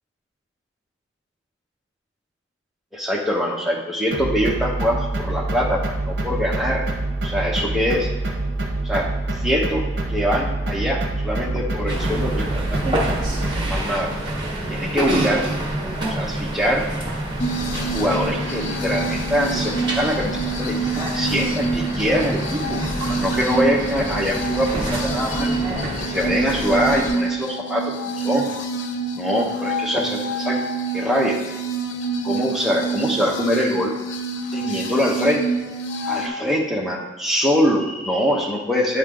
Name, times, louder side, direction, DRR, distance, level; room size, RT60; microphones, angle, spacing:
voice 1, 2.9-6.9 7.2-8.1 8.8-9.1 9.3-9.8 10.1-12.8 13.6-14.1 14.7-15.5 16.1-16.9 17.9-20.7 21.1-22.8 23.1-25.6 26.0-28.5 29.1-30.6 30.9-31.4 32.2-33.9 34.5-35.5 36.1-39.0, equal, ahead, -2 dB, 0.8 m, -23 dB
sound 1, 4.1-13.8, right 2 dB, 60° right, 0.8 m, -26 dB
sound 2, 11.9-27.1, right 1 dB, 25° right, 1.3 m, -27 dB
sound 3, 17.4-36.3, right 3 dB, 90° left, 0.5 m, -27 dB
9.2 x 3.2 x 3.7 m, 1.2 s
head